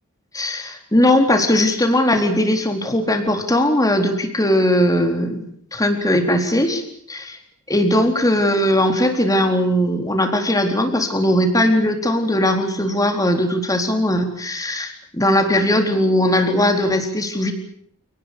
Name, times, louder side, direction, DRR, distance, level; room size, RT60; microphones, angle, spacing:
voice 1, 0.3-5.5 5.7-6.8 7.1-7.4 7.7-17.5, left 1 dB, 15° left, 5 dB, 4.2 m, -19 dB
29.0 x 19.0 x 8.6 m, 0.65 s
head